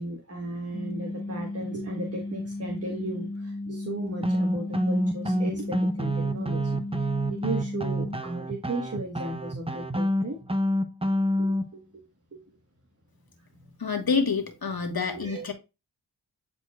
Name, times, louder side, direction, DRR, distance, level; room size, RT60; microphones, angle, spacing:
voice 1, 0.0-10.4 11.4-11.8 12.3-12.4 15.2-15.5, right 2 dB, 35° right, 1.5 m, -35 dB
sound 1, 0.7-8.2, left 2 dB, 15° left, 0.6 m, -35 dB
sound 2, 4.2-11.6, equal, 15° right, 0.9 m, -27 dB
voice 2, 13.8-15.5, left 5 dB, 60° left, 1.7 m, -27 dB
9.7 x 4.3 x 2.4 m
cardioid pair, 40°, 42 cm